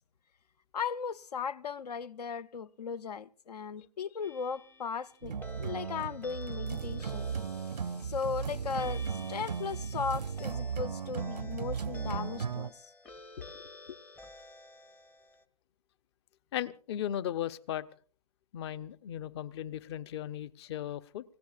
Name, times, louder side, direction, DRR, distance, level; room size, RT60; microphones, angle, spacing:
voice 1, 0.7-12.8 13.4-14.0, left 6 dB, 75° left, 0.7 m, -37 dB
sound 1, 4.2-15.4, left 2 dB, 10° left, 0.6 m, -52 dB
sound 2, 5.2-12.7, right 6 dB, 90° right, 0.7 m, -36 dB
voice 2, 16.5-17.8 18.5-21.2, left 11 dB, 40° left, 0.8 m, -36 dB
29.5 x 17.0 x 2.5 m
hypercardioid pair, 135°, 20 cm